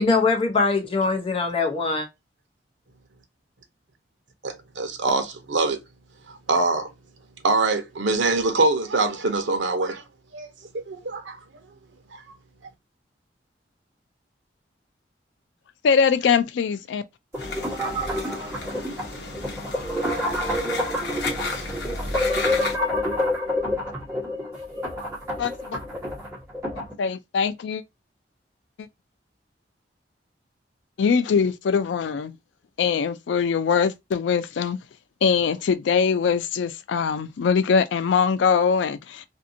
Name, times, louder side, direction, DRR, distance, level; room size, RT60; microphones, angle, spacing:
voice 1, 0.0-2.1, left 3 dB, 30° left, 0.6 m, -22 dB
voice 2, 4.4-5.8 6.3-6.9 7.4-10.0 10.3-10.5 10.7-11.4 12.1-12.4, right 3 dB, 85° right, 0.7 m, -24 dB
voice 3, 15.8-17.0 25.4-25.8 27.0-27.8 28.8-28.9 31.0-32.3 32.8-34.8 35.2-39.2, left 6 dB, 85° left, 0.4 m, -22 dB
sound 1, 17.3-26.9, left 1 dB, 15° right, 1.3 m, -28 dB
sound 2, 17.4-22.7, left 4 dB, 65° left, 0.9 m, -34 dB
2.6 x 2.5 x 2.6 m
head